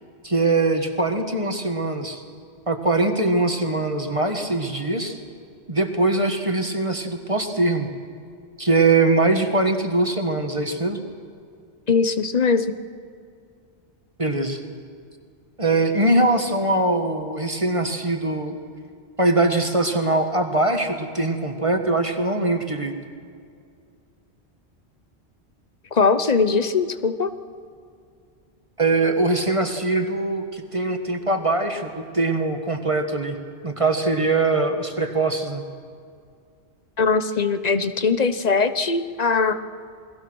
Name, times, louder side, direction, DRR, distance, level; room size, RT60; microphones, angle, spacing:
voice 1, 0.2-2.2 2.7-5.2 5.7-7.9 8.6-11.0 14.2-14.6 15.6-18.6 19.2-22.9 28.8-33.4 33.6-35.6, right 2 dB, 30° right, 5 dB, 1.6 m, -22 dB
voice 2, 11.9-12.7 25.9-27.3 37.0-39.5, left 4 dB, 40° left, 11 dB, 1.0 m, -21 dB
28.5 x 21.0 x 6.3 m, 2.3 s
omnidirectional pair, 1.1 m